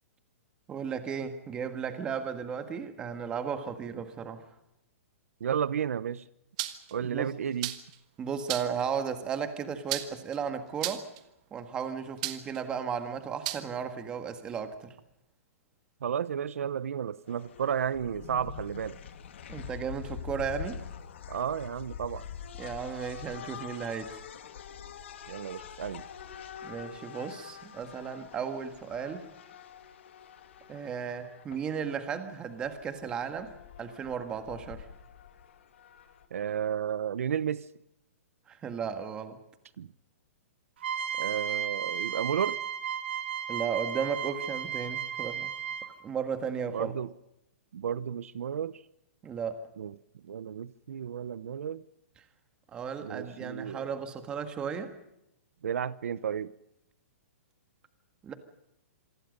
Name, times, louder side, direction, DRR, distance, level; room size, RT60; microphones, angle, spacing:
voice 1, 0.7-4.5 7.0-7.3 8.2-11.0 11.5-14.9 19.5-20.8 22.6-24.2 26.6-29.3 30.7-33.5 33.8-34.9 38.5-39.4 43.5-45.5 46.0-46.9 49.2-49.6 52.7-54.9 58.2-58.3, right 7 dB, 10° right, 1.7 m, -35 dB
voice 2, 5.4-6.2 6.9-7.8 16.0-19.0 21.3-22.2 25.3-26.0 36.3-37.7 39.8-39.9 41.2-42.6 46.7-47.1 47.7-48.8 49.8-50.0 50.2-51.8 53.0-53.9 55.6-56.5, right 8 dB, 70° right, 0.9 m, -32 dB
sound 1, 6.6-6.9 7.6-8.0 8.5-8.8 9.9-10.4 10.8-11.2 12.2-12.6 13.4-13.6, right 15 dB, 30° right, 1.5 m, -33 dB
sound 2, 17.3-36.3, left 8 dB, 55° left, 2.6 m, -45 dB
sound 3, 40.8-46.1, right 8 dB, 50° right, 2.7 m, -34 dB
27.5 x 24.0 x 5.3 m
hypercardioid pair, 175°, 8 cm